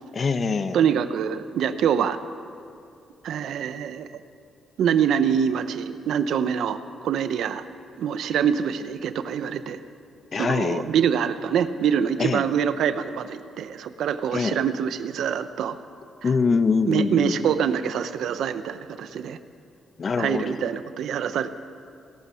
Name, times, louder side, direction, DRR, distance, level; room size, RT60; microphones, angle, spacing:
voice 1, 0.2-0.9 10.3-10.9 12.2-12.4 14.3-14.6 16.2-17.4 20.0-20.7, left 4 dB, 35° left, 11 dB, 0.6 m, -24 dB
voice 2, 0.7-2.2 3.2-4.2 4.8-7.6 8.0-9.8 10.3-15.8 16.2-16.3 16.9-19.4 20.2-21.5, right 8 dB, 75° right, 12 dB, 0.7 m, -25 dB
17.5 x 12.5 x 5.7 m, 2.5 s
cardioid pair, 140°, 0 cm